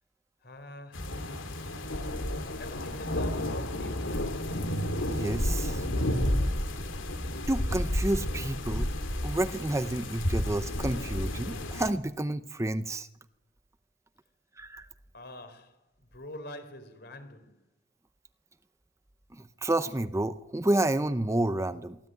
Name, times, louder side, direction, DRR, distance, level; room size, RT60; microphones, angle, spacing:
voice 1, 0.4-1.1 2.4-4.4 15.1-17.6, left 1 dB, 60° left, 4.3 m, -45 dB
sound 1, 0.9-11.9, left 1 dB, 85° left, 3.1 m, -31 dB
voice 2, 5.1-5.9 7.5-8.9 9.2-13.1 14.6-14.9 19.3-22.0, right 1 dB, 15° right, 0.8 m, -30 dB
24.0 x 15.5 x 9.3 m
head